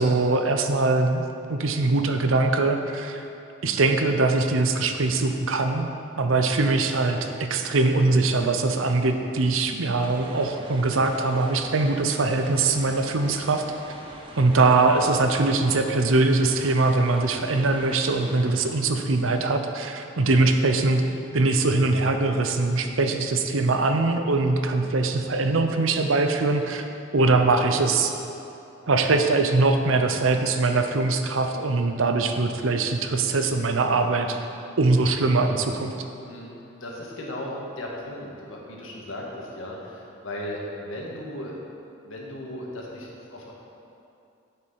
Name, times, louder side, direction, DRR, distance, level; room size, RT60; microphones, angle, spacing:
voice 1, 0.0-3.2 3.6-5.9 6.2-13.6 14.4-21.1 21.3-26.9 27.1-28.1 28.9-34.4 34.8-36.0, right 3 dB, 80° right, 6 dB, 0.7 m, -22 dB
sound 1, 10.0-18.6, right 1 dB, 25° right, 0.7 m, -43 dB
voice 2, 36.3-41.6 42.0-43.5, left 1 dB, 80° left, -3 dB, 1.7 m, -36 dB
7.8 x 6.8 x 5.7 m, 2.8 s
head